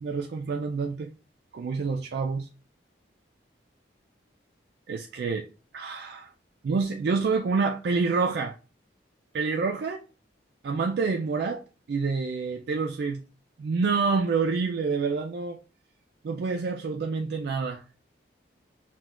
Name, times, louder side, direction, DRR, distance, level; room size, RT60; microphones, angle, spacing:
voice 1, 0.0-1.1 1.5-2.5 4.9-5.5 5.7-6.3 6.6-8.5 9.3-10.0 10.6-11.6 11.9-13.2 13.6-15.6 16.2-17.8, right 4 dB, 55° right, 0.3 m, -27 dB
5.8 x 2.2 x 2.4 m
head